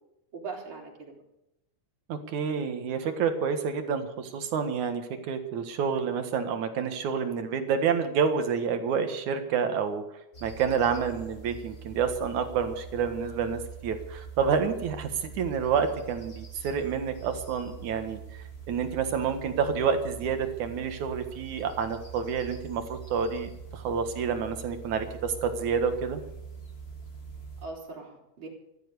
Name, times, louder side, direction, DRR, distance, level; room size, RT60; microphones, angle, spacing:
voice 1, 0.3-1.1 27.6-28.5, right 4 dB, 40° right, -2 dB, 4.7 m, -40 dB
voice 2, 2.1-10.0 10.4-18.2 18.7-26.2, right 6 dB, 75° right, 7 dB, 3.1 m, -29 dB
sound 1, 10.3-27.7, right 6 dB, 25° left, 1.9 m, -44 dB
15.5 x 12.0 x 6.8 m, 0.87 s
omnidirectional pair, 3.5 m